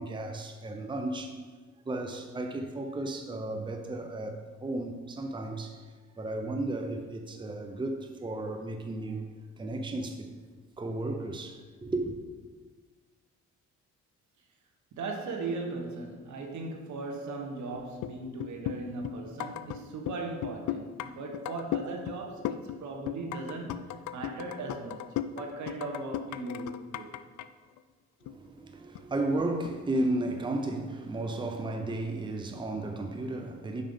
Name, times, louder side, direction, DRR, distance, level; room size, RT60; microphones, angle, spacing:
voice 1, 0.0-1.4 1.9-5.8 6.2-9.2 9.6-10.3 10.8-12.1 28.2-33.8, right 2 dB, 15° right, 0.7 m, -34 dB
voice 2, 14.9-23.8 24.1-27.1, right 3 dB, 70° right, 1.2 m, -38 dB
sound 1, 17.7-18.1 18.4-19.8 20.1-21.1 21.3-22.2 22.4-22.8 23.1-27.5 27.8-27.9 28.3-28.5 28.9-29.7 30.0-30.1, left 11 dB, 75° left, 0.4 m, -36 dB
5.6 x 5.0 x 5.4 m
cardioid pair, 90°, 30 cm